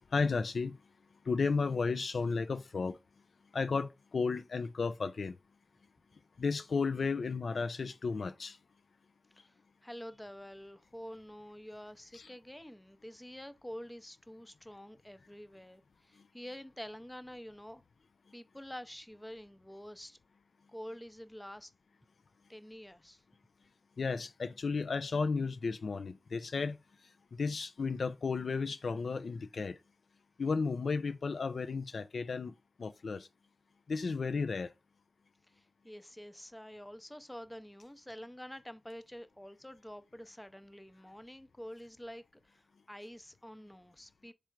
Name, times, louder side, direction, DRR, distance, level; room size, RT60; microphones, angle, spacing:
voice 1, 0.1-0.8 1.2-3.0 3.5-5.4 6.4-8.6 12.1-12.3 24.0-26.8 27.3-29.8 30.4-32.5 32.8-33.3 33.9-34.7, left 4 dB, 75° left, 0.3 m, -33 dB
voice 2, 9.8-17.8 18.3-20.2 20.7-21.7 22.5-23.2 35.5-44.3, equal, 10° left, 0.5 m, -48 dB
3.6 x 3.3 x 4.5 m
cardioid pair, 50°, 0 cm